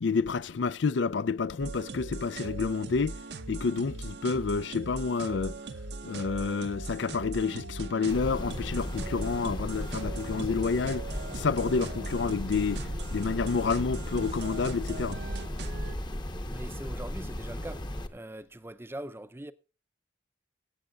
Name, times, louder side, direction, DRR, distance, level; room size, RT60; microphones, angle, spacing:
voice 1, 0.0-3.2 3.5-5.6 6.0-11.1 11.3-15.2, left 4 dB, 75° left, 0.5 m, -29 dB
sound 1, 1.6-15.9, right 3 dB, 65° right, 0.8 m, -40 dB
sound 2, 8.1-18.1, left 1 dB, 25° left, 0.9 m, -36 dB
voice 2, 16.4-17.8 18.1-19.5, right 1 dB, 15° right, 0.5 m, -41 dB
24.5 x 8.2 x 2.4 m
head